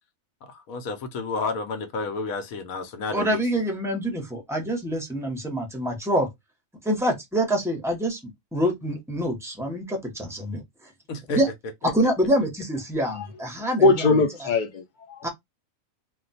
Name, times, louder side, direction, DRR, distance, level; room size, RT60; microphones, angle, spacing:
voice 1, 0.5-3.4 11.1-11.4 11.8-11.9, left 3 dB, 85° left, 1.1 m, -31 dB
voice 2, 3.1-6.3 6.8-8.2 8.5-10.6 11.4-11.5 11.8-14.1 15.2-15.3, equal, 5° right, 0.6 m, -26 dB
voice 3, 13.8-15.3, left 3 dB, 50° left, 0.6 m, -21 dB
2.4 x 2.2 x 3.9 m
omnidirectional pair, 1.4 m